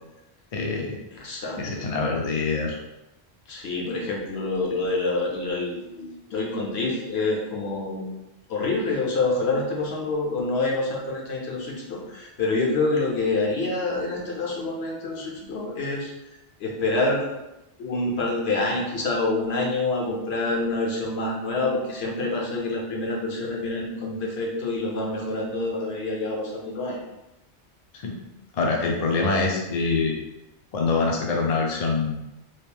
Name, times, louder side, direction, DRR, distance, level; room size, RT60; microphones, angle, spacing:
voice 1, 0.5-1.0 1.6-2.8 28.0-28.2 28.5-30.1 30.7-32.3, left 4 dB, 50° left, 0 dB, 0.5 m, -25 dB
voice 2, 1.1-1.9 3.5-8.1 8.5-16.1 16.6-17.4 17.8-27.0, left 2 dB, 70° left, -2 dB, 1.0 m, -27 dB
3.0 x 2.5 x 3.3 m, 0.95 s
omnidirectional pair, 1.1 m